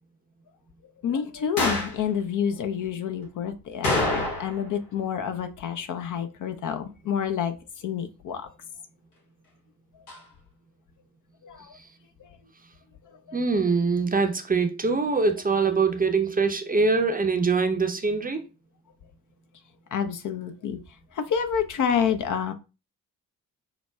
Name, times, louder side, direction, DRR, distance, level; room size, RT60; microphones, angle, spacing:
voice 1, 1.0-7.5 7.8-8.5 11.4-11.7 13.3-13.4 19.9-20.8 21.2-22.5, left 8 dB, 45° left, 0.6 m, -28 dB
sound 1, 1.6-2.0 3.8-4.7 5.0-5.1 10.1-10.2, left 2 dB, 85° left, 1.1 m, -26 dB
voice 2, 13.3-18.4, right 4 dB, 20° right, 0.6 m, -23 dB
5.8 x 2.2 x 2.2 m
hypercardioid pair, 40°, 43 cm